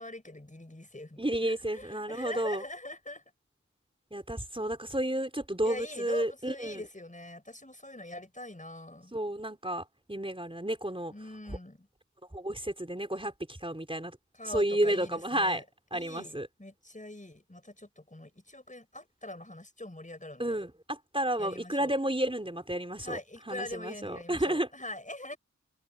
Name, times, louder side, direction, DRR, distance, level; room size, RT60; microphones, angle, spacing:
voice 1, 0.0-3.2 5.6-9.1 11.1-11.9 14.3-15.6 15.9-20.6 21.4-21.9 23.0-25.4, left 1 dB, 25° left, 5.8 m, -43 dB
voice 2, 1.2-2.6 4.1-6.8 9.1-11.1 12.3-14.2 14.5-15.6 15.9-16.5 20.4-23.2 23.5-24.7, right 1 dB, 20° right, 4.5 m, -31 dB
wide cardioid pair, 70°, 29 cm